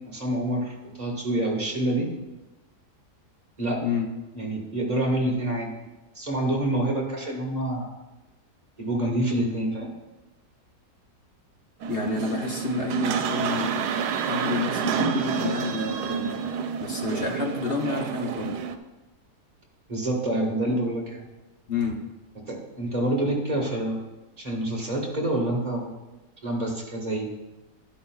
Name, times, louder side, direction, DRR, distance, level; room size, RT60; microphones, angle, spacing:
voice 1, 0.1-2.1 3.6-3.8 4.3-5.8 6.1-7.9 8.8-9.9 19.9-21.3 22.5-24.0 24.4-25.9 26.4-27.3, right 1 dB, 25° right, -1 dB, 1.7 m, -27 dB
sound 1, 11.8-18.7, right 6 dB, 90° right, 1.2 m, -28 dB
voice 2, 11.9-13.8 14.2-16.4 16.8-18.6 21.7-22.0, left 4 dB, 45° left, 2 dB, 1.0 m, -29 dB
11.5 x 11.0 x 2.4 m, 1.1 s
omnidirectional pair, 1.7 m